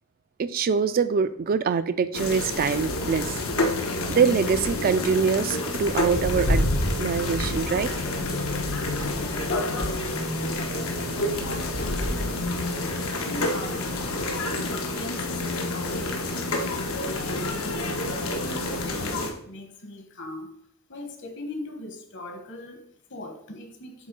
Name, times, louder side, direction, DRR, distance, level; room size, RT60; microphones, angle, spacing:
voice 1, 0.4-3.4 4.1-6.7 7.0-7.9, right 6 dB, 45° right, 0.3 m, -24 dB
sound 1, 2.1-19.3, left 2 dB, 85° left, 1.0 m, -28 dB
voice 2, 11.3-16.5 17.0-20.5 20.9-24.1, left 1 dB, 60° left, 1.2 m, -40 dB
7.8 x 3.2 x 5.2 m
head